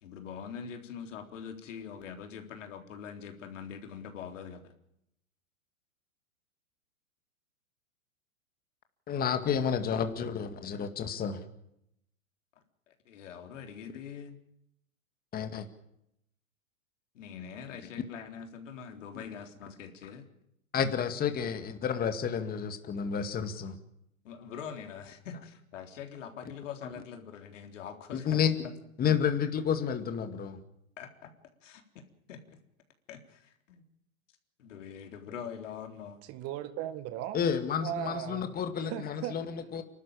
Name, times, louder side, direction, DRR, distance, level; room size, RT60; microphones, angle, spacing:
voice 1, 0.0-4.7 12.9-14.4 17.1-20.2 24.2-28.4 31.0-31.3 31.6-32.0 32.3-32.4 33.1-33.8 34.6-36.2, left 7 dB, 60° left, 4 dB, 3.8 m, -44 dB
voice 2, 9.1-11.4 15.3-15.7 20.7-23.8 26.8-26.9 28.1-28.5 29.0-30.6 37.3-39.8, left 7 dB, 20° left, 8 dB, 2.1 m, -30 dB
voice 3, 36.3-37.5 37.8-38.5 38.8-39.4, right 12 dB, 35° right, 11 dB, 1.8 m, -37 dB
29.5 x 12.5 x 8.9 m, 0.79 s
hypercardioid pair, 105°, 41 cm